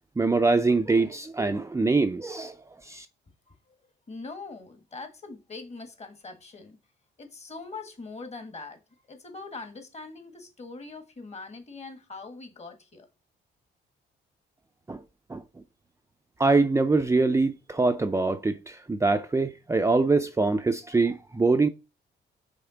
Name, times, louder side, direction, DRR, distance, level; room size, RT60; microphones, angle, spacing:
voice 1, 0.2-2.5 2.8-3.1 14.9-15.0 15.3-15.4 16.4-21.7, right 3 dB, 15° right, 0.5 m, -24 dB
voice 2, 4.1-6.8 7.2-8.8 9.1-13.1, left 3 dB, 35° left, 1.6 m, -42 dB
5.6 x 3.6 x 4.9 m
cardioid pair, 90°, 20 cm